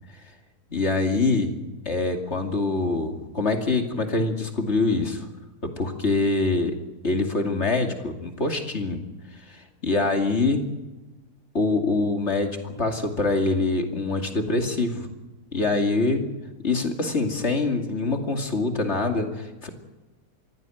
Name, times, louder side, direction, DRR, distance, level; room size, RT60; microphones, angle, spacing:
voice 1, 0.7-5.3 5.8-6.7 7.0-9.0 9.5-10.6 11.5-15.1 15.5-16.2 16.6-19.7, left 3 dB, 45° left, 4 dB, 2.8 m, -24 dB
23.5 x 16.0 x 9.1 m, 1.1 s
omnidirectional pair, 1.7 m